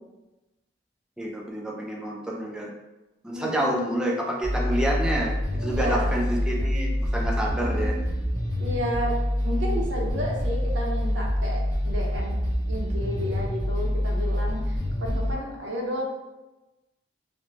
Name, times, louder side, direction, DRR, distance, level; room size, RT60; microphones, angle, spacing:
voice 1, 1.2-2.7 3.2-5.3 5.6-7.9, right 1 dB, 5° right, -2 dB, 0.3 m, -28 dB
voice 2, 3.3-3.8 5.6-6.2 7.4-8.0 8.6-9.1 9.4-12.3 12.7-16.0, equal, 90° right, -1 dB, 0.6 m, -32 dB
sound 1, 4.4-15.3, equal, 30° right, 1.0 m, -26 dB
2.5 x 2.1 x 3.0 m, 1.1 s
head